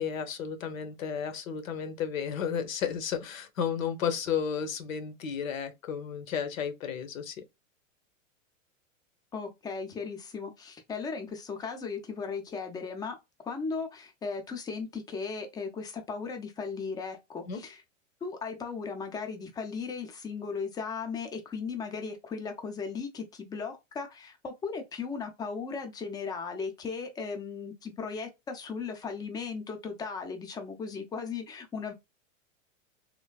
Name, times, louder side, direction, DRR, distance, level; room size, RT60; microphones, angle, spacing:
voice 1, 0.0-7.4 17.5-17.6, left 7 dB, 80° left, 0.8 m, -33 dB
voice 2, 9.3-13.2 13.4-17.8 18.2-31.9, left 5 dB, 10° left, 0.4 m, -37 dB
3.3 x 2.1 x 2.2 m
hypercardioid pair, 125°, 39 cm